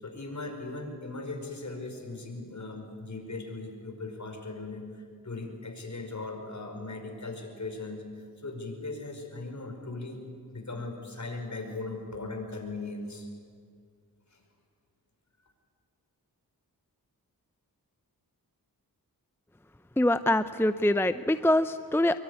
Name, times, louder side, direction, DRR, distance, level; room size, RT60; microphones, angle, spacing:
voice 1, 0.0-10.2 10.5-13.3 14.3-14.4, left 3 dB, 50° left, 4 dB, 5.2 m, -38 dB
voice 2, 20.0-22.2, left 1 dB, 5° left, 12 dB, 0.6 m, -24 dB
25.0 x 22.5 x 9.8 m, 2.1 s
wide cardioid pair, 80°, 37 cm